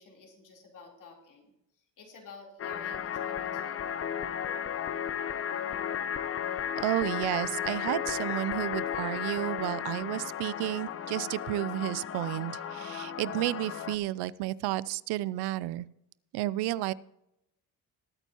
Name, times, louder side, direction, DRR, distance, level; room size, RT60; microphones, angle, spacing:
voice 1, 0.0-3.9, left 4 dB, 55° left, 0 dB, 3.6 m, -52 dB
sound 1, 2.6-14.0, left 9 dB, 35° left, 0.7 m, -34 dB
voice 2, 6.8-15.9 16.3-16.9, right 16 dB, 85° right, 21 dB, 0.5 m, -32 dB
20.0 x 9.0 x 2.9 m, 0.83 s
cardioid pair, 125°, 38 cm